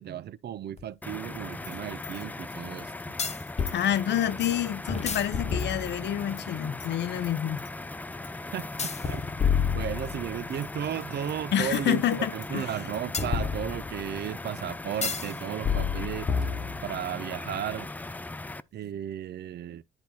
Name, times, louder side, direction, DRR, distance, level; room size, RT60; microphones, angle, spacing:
voice 1, 0.0-3.1 8.5-9.2 9.7-12.0 12.3-16.3 16.8-17.9 18.7-19.8, right 10 dB, 55° right, 0.5 m, -34 dB
sound 1, 0.8-0.9 3.2-3.8 4.9-6.2 8.8-10.5 13.1-14.1 15.0-15.3 15.6-17.0, left 6 dB, 35° left, 1.1 m, -29 dB
sound 2, 1.0-18.6, left 2 dB, 10° left, 0.3 m, -39 dB
sound 3, 1.3-6.4 6.7-7.7 8.2-10.0 10.3-13.1, left 9 dB, 90° left, 2.0 m, -47 dB
voice 2, 3.7-7.6 11.5-12.7, left 10 dB, 60° left, 0.6 m, -28 dB
10.5 x 4.4 x 2.8 m
cardioid pair, 90°, 20 cm